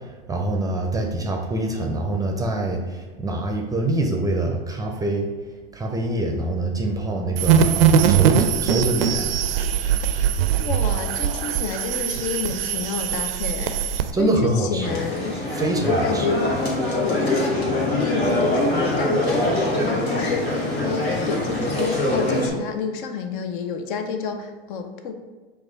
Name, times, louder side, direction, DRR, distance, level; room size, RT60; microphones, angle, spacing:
voice 1, 0.3-5.3 5.7-9.3 9.8-10.0 14.1-15.0 15.5-16.2, right 1 dB, 10° right, 2 dB, 0.5 m, -25 dB
sound 1, 7.4-14.1, right 8 dB, 75° right, 0.4 m, -21 dB
voice 2, 10.6-16.6 16.8-25.1, left 5 dB, 60° left, 6 dB, 0.6 m, -29 dB
sound 2, 14.8-22.5, left 1 dB, 90° left, 1.1 m, -23 dB
4.7 x 2.4 x 3.8 m, 1.4 s
hypercardioid pair, 90°, 30 cm